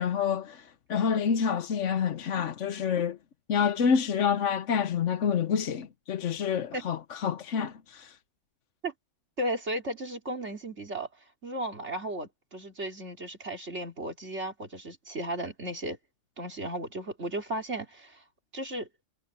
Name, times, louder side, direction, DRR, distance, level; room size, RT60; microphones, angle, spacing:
voice 1, 0.0-3.2 3.5-8.2, left 7 dB, 85° left, 1.2 m, -28 dB
voice 2, 9.4-11.1 11.4-16.0 16.4-18.2 18.5-18.9, right 1 dB, 65° right, 3.4 m, -35 dB
omnidirectional pair, 1.2 m